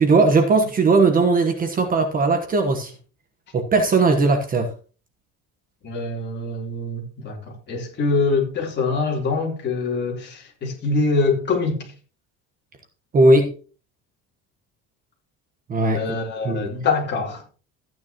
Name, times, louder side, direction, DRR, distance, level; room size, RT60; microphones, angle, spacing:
voice 1, 0.0-2.9 3.5-4.7 13.1-13.5 15.7-16.0 16.4-16.7, right 3 dB, 25° right, 1.2 m, -18 dB
voice 2, 5.8-11.9 15.9-17.5, left 3 dB, 35° left, 3.6 m, -24 dB
14.5 x 9.5 x 3.0 m
cardioid pair, 170°, 31 cm